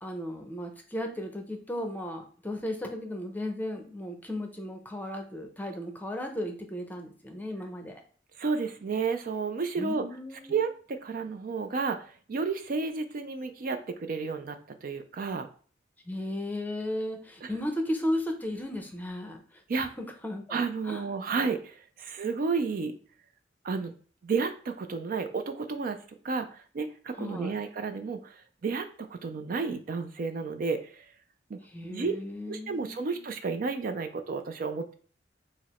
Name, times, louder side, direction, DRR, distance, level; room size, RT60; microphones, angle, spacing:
voice 1, 0.0-8.0 9.8-10.6 16.1-20.6 20.9-21.0 27.2-27.5 31.7-33.2, left 1 dB, 10° left, 4 dB, 0.7 m, -35 dB
voice 2, 8.4-10.1 10.5-15.5 17.4-17.5 19.7-19.9 20.5-22.9 23.6-23.9 24.2-26.0 26.2-31.1 31.5-31.6 31.9-32.1 32.5-34.9, right 4 dB, 50° right, 8 dB, 0.4 m, -32 dB
4.8 x 2.0 x 4.2 m, 0.43 s
head